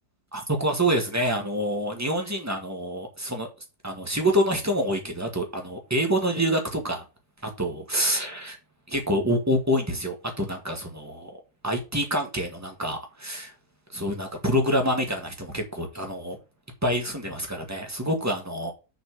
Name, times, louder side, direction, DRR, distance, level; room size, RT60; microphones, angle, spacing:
voice 1, 0.3-3.5 3.8-7.0 7.4-8.6 8.9-11.3 11.6-13.5 13.9-16.4 16.8-18.7, equal, 10° right, 1.9 m, -27 dB
6.8 x 4.4 x 6.4 m
omnidirectional pair, 1.7 m